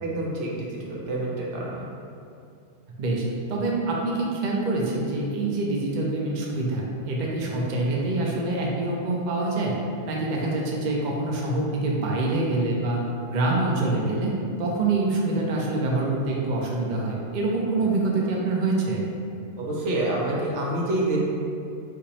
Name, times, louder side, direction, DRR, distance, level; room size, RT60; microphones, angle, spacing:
voice 1, 0.0-1.9 19.6-21.2, right 1 dB, 75° right, -4 dB, 1.0 m, -27 dB
voice 2, 3.0-9.7 10.1-13.0 13.3-14.3 14.6-19.0, right 2 dB, 55° right, -2 dB, 0.5 m, -25 dB
2.9 x 2.6 x 4.0 m, 2.5 s
omnidirectional pair, 1.2 m